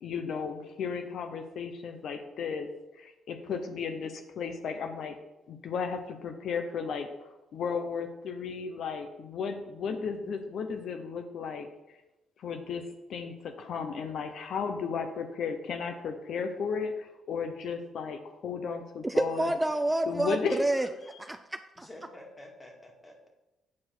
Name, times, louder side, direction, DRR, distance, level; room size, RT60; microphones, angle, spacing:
voice 1, 0.0-2.7 3.0-5.2 5.5-7.1 7.5-11.7 12.4-12.8 13.1-19.5 20.1-20.6, left 6 dB, 70° left, 0.7 m, -34 dB
voice 2, 19.0-20.9 21.2-21.9, right 1 dB, 10° right, 0.4 m, -28 dB
voice 3, 21.8-23.3, left 1 dB, 20° left, 1.8 m, -49 dB
8.4 x 4.6 x 4.4 m
cardioid pair, 90°, 0 cm